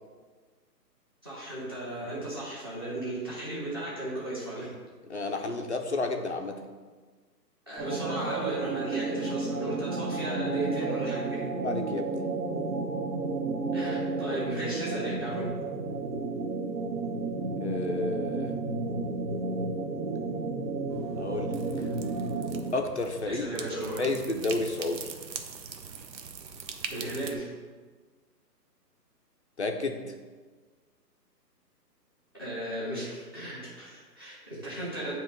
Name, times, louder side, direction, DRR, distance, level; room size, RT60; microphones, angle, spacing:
voice 1, 1.2-4.7 7.7-11.4 13.7-15.4 23.3-24.0 26.9-27.5 32.4-35.1, right 1 dB, 15° right, -6 dB, 0.7 m, -35 dB
voice 2, 5.1-6.6 11.6-12.1 17.6-18.6 21.2-21.9 22.7-23.5 24.0-25.1 29.6-30.1, left 2 dB, 45° left, 4 dB, 0.4 m, -31 dB
sound 1, 7.8-22.9, right 3 dB, 65° right, 1.1 m, -32 dB
sound 2, 20.9-27.3, right 5 dB, 85° right, 0.8 m, -42 dB
8.7 x 2.9 x 3.7 m, 1.4 s
hypercardioid pair, 170°, 50 cm